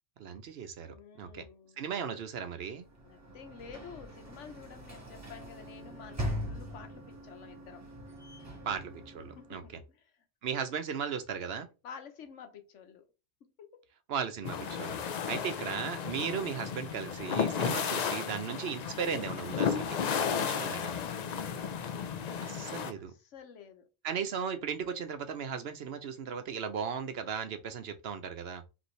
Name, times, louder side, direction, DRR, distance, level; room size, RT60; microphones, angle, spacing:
voice 1, 0.2-1.4 1.8-2.9 8.6-9.6 10.4-11.7 14.1-15.0 15.3-20.0 20.3-21.0 22.4-23.1 24.0-28.6, right 7 dB, 65° right, 0.8 m, -36 dB
voice 2, 0.9-1.9 3.0-7.8 9.4-10.7 11.8-13.0 13.6-13.8 20.8-21.7 23.0-23.9, left 7 dB, 85° left, 1.2 m, -51 dB
Sliding door / Slam, 2.8-9.8, equal, 15° right, 1.5 m, -42 dB
sound 1, 14.4-22.9, left 7 dB, 60° left, 0.4 m, -33 dB
5.2 x 3.0 x 3.1 m
omnidirectional pair, 1.2 m